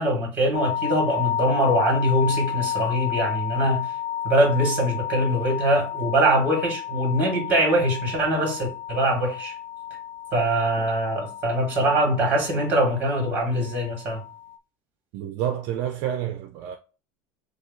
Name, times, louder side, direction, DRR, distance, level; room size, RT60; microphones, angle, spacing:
voice 1, 0.0-3.9 4.2-9.5 10.3-14.2, right 1 dB, 25° right, 1.8 m, -23 dB
sound 1, 0.5-14.6, left 11 dB, 70° left, 0.4 m, -32 dB
voice 2, 15.1-16.8, right 10 dB, 55° right, 0.4 m, -29 dB
4.8 x 2.3 x 3.8 m
cardioid pair, 160°, 7 cm